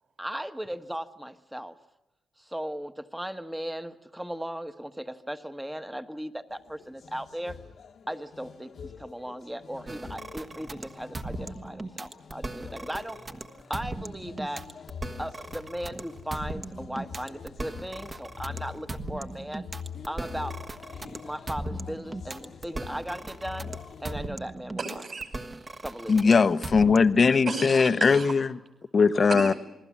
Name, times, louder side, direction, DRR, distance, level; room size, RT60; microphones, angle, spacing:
voice 1, 0.2-1.7 2.4-7.6 8.1-13.2 13.7-14.6 15.2-19.7 20.1-20.6 21.2-23.7 24.0-24.8 25.8-26.3, equal, 5° right, 1.2 m, -37 dB
sound 1, 6.5-24.3, left 7 dB, 60° left, 1.3 m, -44 dB
sound 2, 9.9-27.3, right 2 dB, 30° right, 1.4 m, -38 dB
voice 2, 24.8-25.9 27.4-28.4 29.0-29.6, right 4 dB, 45° right, 5.3 m, -35 dB
voice 3, 26.1-28.5 28.9-29.5, left 5 dB, 40° left, 0.9 m, -20 dB
28.0 x 21.0 x 7.3 m
cardioid pair, 120°, 0 cm